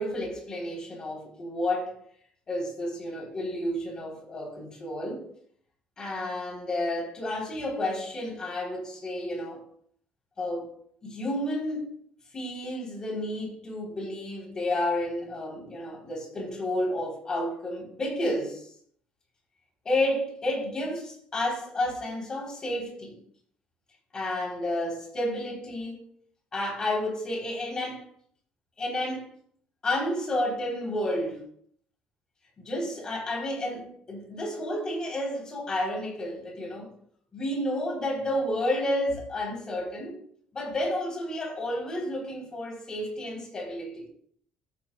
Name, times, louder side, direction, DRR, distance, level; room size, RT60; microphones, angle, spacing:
voice 1, 0.0-2.0 2.5-5.2 6.0-9.6 10.4-10.7 11.0-12.0 12.3-18.7 19.8-23.1 24.1-26.0 26.5-28.0 28.8-29.3 29.8-31.4 32.6-36.9 37.3-40.2 40.5-44.1, left 1 dB, 25° left, 3.3 m, -31 dB
14.5 x 9.2 x 2.2 m
cardioid pair, 170°, 3 cm